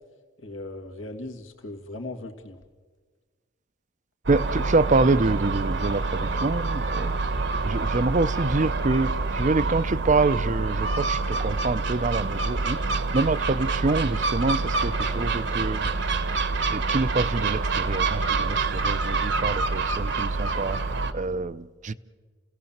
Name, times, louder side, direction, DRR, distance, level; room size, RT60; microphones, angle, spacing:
voice 1, 0.4-2.6, left 2 dB, 85° left, 3 dB, 2.0 m, -38 dB
voice 2, 4.3-7.1 7.6-15.9 16.6-21.9, right 3 dB, 40° right, 15 dB, 0.6 m, -26 dB
Gull seagull, 4.3-21.1, right 3 dB, 65° right, 1.3 m, -26 dB
29.5 x 17.0 x 7.3 m, 1.5 s
head